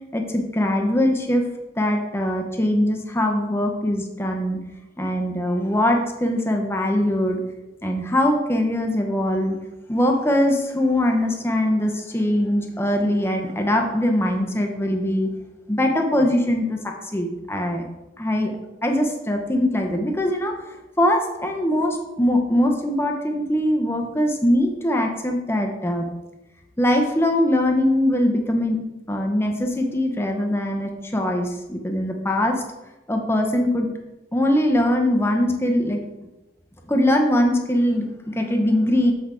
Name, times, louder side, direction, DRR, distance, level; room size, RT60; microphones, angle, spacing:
voice 1, 0.1-1.5 1.8-4.6 5.0-7.4 7.8-9.6 9.9-15.3 15.7-16.8 17.1-17.8 18.2-18.5 18.8-20.5 21.0-26.1 26.8-28.8 29.1-32.5 33.1-33.9 34.3-36.0 36.9-39.1, left 1 dB, 15° left, 2 dB, 0.9 m, -21 dB
7.0 x 6.0 x 3.7 m, 1.0 s
head